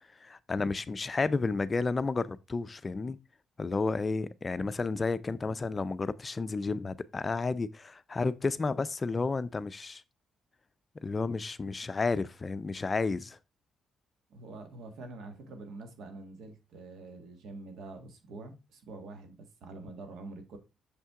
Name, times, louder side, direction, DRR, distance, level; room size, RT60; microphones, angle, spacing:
voice 1, 0.2-3.2 3.6-10.0 11.0-13.4, left 3 dB, 30° left, 0.4 m, -31 dB
voice 2, 14.3-20.6, right 3 dB, 75° right, 1.7 m, -46 dB
6.6 x 5.6 x 3.6 m
cardioid pair, 90°, 0 cm